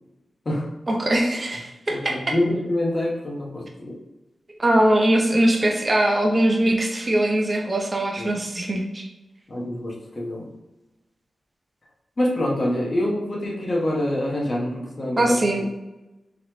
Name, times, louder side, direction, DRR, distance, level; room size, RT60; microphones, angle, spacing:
voice 1, 0.9-2.1 4.6-9.1 15.2-15.6, right 1 dB, 35° right, 1 dB, 0.5 m, -21 dB
voice 2, 1.9-3.9 8.2-8.3 9.5-10.5 12.2-15.2, left 1 dB, 40° left, -3 dB, 1.0 m, -26 dB
3.9 x 3.1 x 2.9 m, 1.0 s
wide cardioid pair, 85°, 0 cm